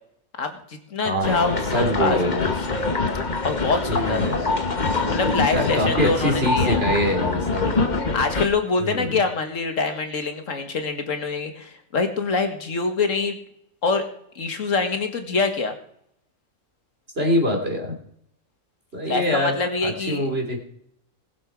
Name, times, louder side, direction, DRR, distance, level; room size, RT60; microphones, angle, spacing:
voice 1, 0.4-2.8 3.4-4.2 5.1-6.8 7.6-13.4 13.8-14.0 14.4-15.7 19.1-20.3, left 4 dB, 65° left, 6 dB, 2.1 m, -25 dB
voice 2, 1.0-2.5 3.9-4.5 5.5-7.7 8.8-9.2 17.2-17.9 18.9-19.5 19.8-20.6, equal, 45° right, 1 dB, 3.3 m, -24 dB
sound 1, 1.2-8.5, left 3 dB, 35° left, 1.3 m, -24 dB
20.5 x 7.3 x 4.7 m, 0.69 s
omnidirectional pair, 1.5 m